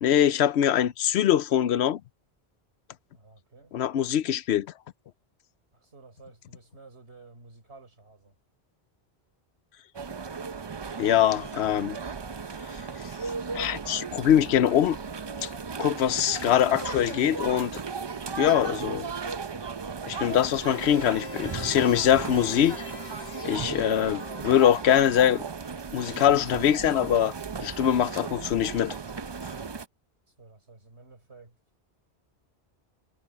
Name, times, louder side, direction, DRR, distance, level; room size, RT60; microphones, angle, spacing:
voice 1, 0.0-2.0 3.7-4.7 11.0-12.0 13.5-15.0 15.4-15.5 15.8-17.8 18.4-19.1 20.0-22.8 23.4-25.4 25.9-27.3 27.6-29.0, left 10 dB, 80° left, 0.9 m, -23 dB
voice 2, 3.1-3.7 5.7-8.3 30.3-31.8, right 3 dB, 85° right, 4.2 m, -52 dB
sound 1, 9.9-29.8, right 5 dB, 35° right, 0.4 m, -36 dB
sound 2, 20.6-25.0, left 4 dB, 45° left, 1.1 m, -42 dB
omnidirectional pair, 1.1 m